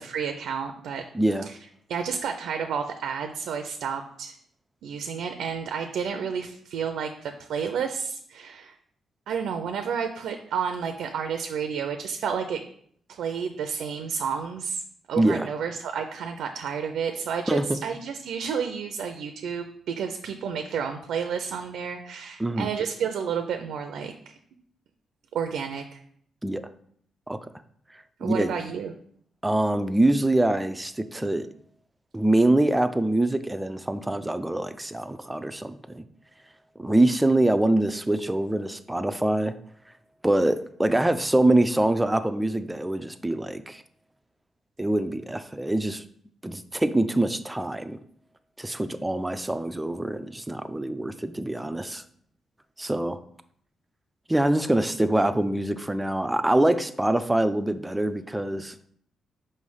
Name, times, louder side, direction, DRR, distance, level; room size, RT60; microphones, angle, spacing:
voice 1, 0.0-1.0 1.5-1.6 1.9-4.4 4.8-8.7 9.3-12.6 13.1-14.8 15.1-24.3 25.3-26.0 28.2-28.9, right 7 dB, 85° right, 6 dB, 0.5 m, -31 dB
voice 2, 1.1-1.5 15.2-15.5 17.5-17.8 22.4-22.7 26.4-26.6 27.3-27.4 28.2-28.5 29.4-31.5 32.1-36.0 36.8-39.5 40.2-43.8 44.8-46.0 46.4-48.0 48.6-52.0 52.8-53.2 54.3-58.9, right 1 dB, 10° right, 10 dB, 0.3 m, -24 dB
5.4 x 3.2 x 5.4 m, 0.64 s
cardioid pair, 135°, 0 cm